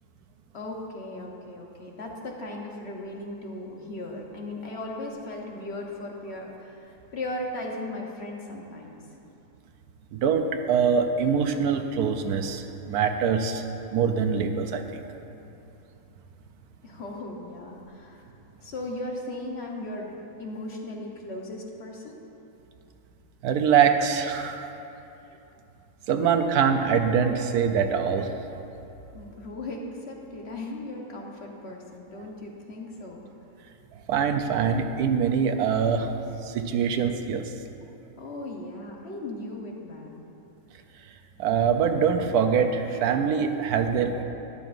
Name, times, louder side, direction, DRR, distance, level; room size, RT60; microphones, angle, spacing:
voice 1, 0.5-9.0 16.8-18.2 18.6-20.1 20.4-22.2 29.1-33.2 38.2-40.2, left 1 dB, 45° left, 0 dB, 1.2 m, -37 dB
voice 2, 10.1-13.6 13.9-15.0 23.4-24.7 26.1-28.3 34.1-36.1 36.4-37.5 41.4-44.2, right 6 dB, 85° right, 7 dB, 1.2 m, -24 dB
12.5 x 11.0 x 2.5 m, 2.8 s
omnidirectional pair, 1.6 m